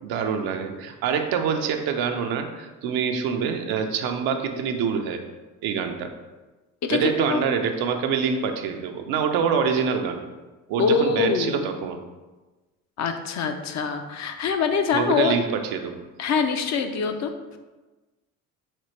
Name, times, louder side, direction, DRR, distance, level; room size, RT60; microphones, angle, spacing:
voice 1, 0.0-5.2 5.6-6.1 6.9-10.2 10.7-12.0 14.9-16.0, right 6 dB, 60° right, 5 dB, 0.7 m, -25 dB
voice 2, 10.8-11.6 13.0-15.4 16.2-17.6, left 5 dB, 40° left, 6 dB, 0.6 m, -24 dB
4.2 x 4.0 x 3.2 m, 1.2 s
hypercardioid pair, 65°, 41 cm